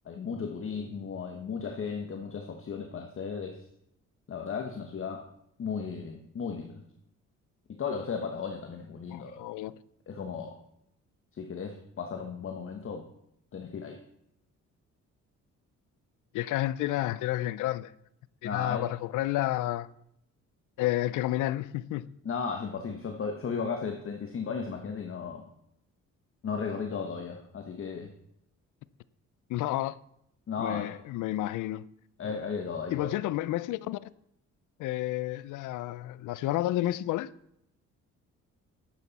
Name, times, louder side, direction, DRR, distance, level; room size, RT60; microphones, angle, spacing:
voice 1, 0.0-3.6 4.3-5.3 5.6-6.8 7.7-9.4 10.1-10.6 11.3-13.1 13.5-14.0 18.4-18.9 22.2-25.5 26.4-28.1 30.5-30.9 32.2-33.1, left 5 dB, 45° left, 1.2 m, -35 dB
voice 2, 9.1-9.7 16.3-17.9 18.4-19.9 20.8-22.1 29.5-30.0 30.6-31.9 32.9-34.1 34.8-37.3, left 15 dB, 85° left, 0.5 m, -30 dB
11.5 x 8.2 x 4.1 m
cardioid pair, 90°, 30 cm